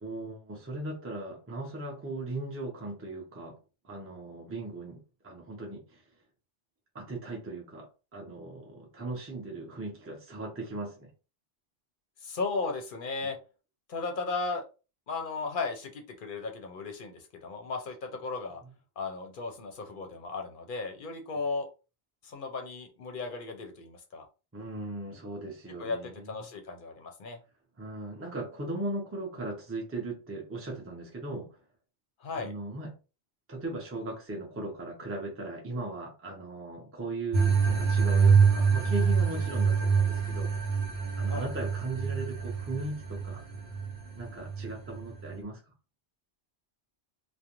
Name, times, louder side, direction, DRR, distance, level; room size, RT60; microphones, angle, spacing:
voice 1, 0.0-3.6 3.8-6.0 6.9-11.1 13.2-13.3 24.5-26.3 27.8-31.5 32.4-33.0 33.5-40.5 41.2-43.4 44.2-45.6, right 2 dB, 15° right, 0.5 m, -38 dB
voice 2, 12.2-13.4 13.9-14.6 15.1-18.6 19.0-21.7 22.2-24.3 25.8-27.4 32.2-32.5 41.3-41.5, left 4 dB, 60° left, 0.7 m, -35 dB
sound 1, 37.3-45.4, right 5 dB, 75° right, 0.9 m, -26 dB
2.4 x 2.1 x 2.9 m
omnidirectional pair, 1.1 m